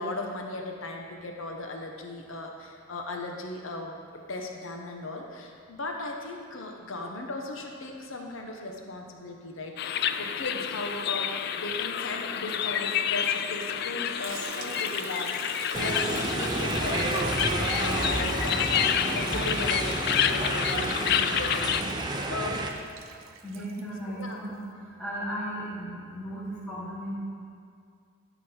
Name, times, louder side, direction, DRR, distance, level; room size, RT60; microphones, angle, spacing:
voice 1, 0.0-22.0 22.3-22.7 24.2-24.4, left 2 dB, 75° left, 2 dB, 1.0 m, -37 dB
sound 1, 9.8-21.8, left 9 dB, 50° left, 0.3 m, -29 dB
Liquid, 14.2-24.3, right 6 dB, 75° right, 0.7 m, -44 dB
sound 2, 15.7-22.7, right 2 dB, 20° right, 0.5 m, -30 dB
voice 2, 23.4-24.5 25.0-27.1, equal, ahead, -11 dB, 1.6 m, -35 dB
12.5 x 6.1 x 4.4 m, 2.2 s
head